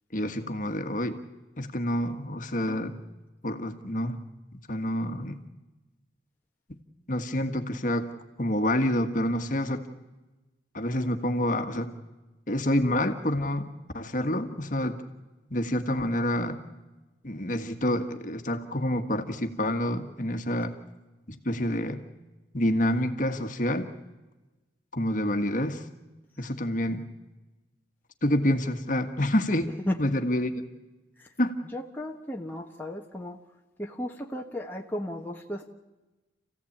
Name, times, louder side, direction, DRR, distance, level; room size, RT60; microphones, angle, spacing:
voice 1, 0.1-1.2 1.6-3.0 3.4-4.2 4.7-5.4 7.1-8.1 8.4-9.8 10.7-11.9 12.5-15.0 15.5-16.6 17.2-20.7 21.4-22.0 22.5-23.9 24.9-25.8 26.4-27.1 28.2-30.5 31.4-31.5, left 1 dB, 45° left, 6 dB, 1.6 m, -28 dB
voice 2, 31.7-33.4 33.8-35.7, left 1 dB, 10° left, 0 dB, 1.3 m, -34 dB
29.0 x 16.0 x 8.7 m, 1.1 s
head